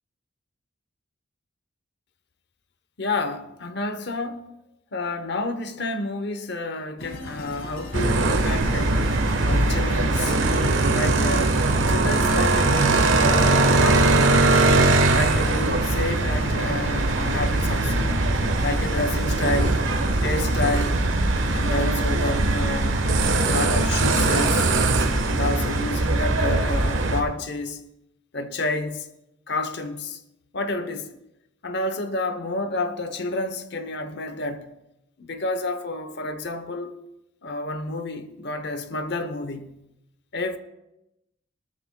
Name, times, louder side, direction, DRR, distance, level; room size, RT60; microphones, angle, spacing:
voice 1, 3.0-4.5 4.9-9.0 9.4-10.4 10.9-11.6 11.9-14.7 15.1-18.2 18.6-19.8 20.2-21.0 21.5-23.2 23.4-24.7 25.2-27.8 28.3-29.1 29.5-30.2 30.5-31.2 31.6-34.7 35.2-36.9 37.4-39.8 40.3-40.6, left 2 dB, 55° left, 0.9 m, -30 dB
sound 1, 7.0-26.3, left 1 dB, 75° left, 1.9 m, -39 dB
sound 2, 7.9-27.2, right 2 dB, 70° right, 1.2 m, -21 dB
19.0 x 13.5 x 2.3 m
head